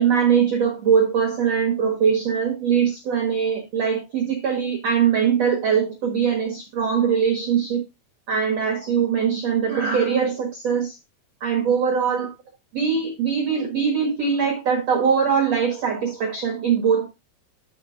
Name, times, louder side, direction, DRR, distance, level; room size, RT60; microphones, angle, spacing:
voice 1, 0.0-7.8 8.3-11.0 11.4-12.3 12.7-17.1, right 7 dB, 70° right, 1 dB, 1.5 m, -21 dB
10.5 x 5.0 x 3.8 m, 0.24 s
omnidirectional pair, 5.2 m